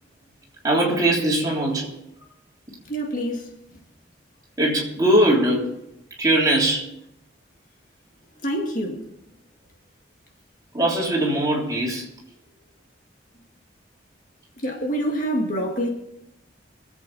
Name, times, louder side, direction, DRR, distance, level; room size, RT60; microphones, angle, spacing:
voice 1, 0.6-1.9 4.6-5.7 6.2-6.9 10.7-12.1, right 1 dB, 20° right, 3.3 m, -20 dB
voice 2, 2.9-3.5 8.4-9.0 14.6-15.9, equal, 45° left, 2.0 m, -26 dB
24.5 x 8.3 x 4.2 m
head